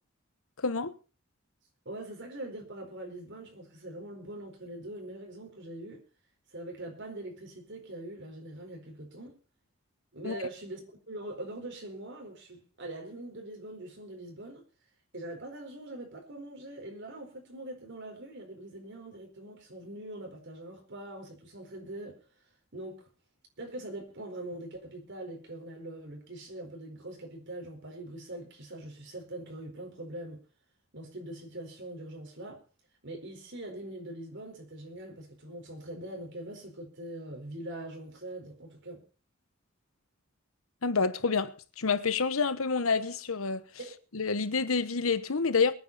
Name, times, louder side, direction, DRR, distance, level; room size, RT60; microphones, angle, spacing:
voice 1, 0.6-0.9 10.2-10.4 40.8-43.6 44.1-45.7, left 4 dB, 80° left, 1.1 m, -28 dB
voice 2, 1.8-6.0 6.5-9.3 10.1-14.6 15.1-22.1 22.7-23.0 23.6-30.4 30.9-32.6 33.0-39.0 43.8-44.0, right 1 dB, 60° right, 4.6 m, -42 dB
23.0 x 9.4 x 4.1 m
head